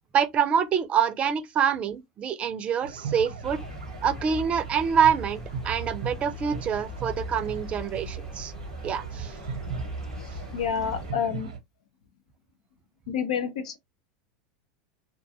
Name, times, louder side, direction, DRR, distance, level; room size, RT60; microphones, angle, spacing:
voice 1, 0.1-3.6 4.0-8.5 8.8-9.4, right 7 dB, 35° right, 0.5 m, -26 dB
sound 1, 2.8-11.6, right 5 dB, 85° right, 0.8 m, -38 dB
sound 2, 3.4-11.1, equal, 15° left, 0.6 m, -40 dB
voice 2, 10.5-11.5 13.1-13.8, left 7 dB, 80° left, 0.6 m, -28 dB
2.5 x 2.3 x 2.6 m
hypercardioid pair, 100°, 4 cm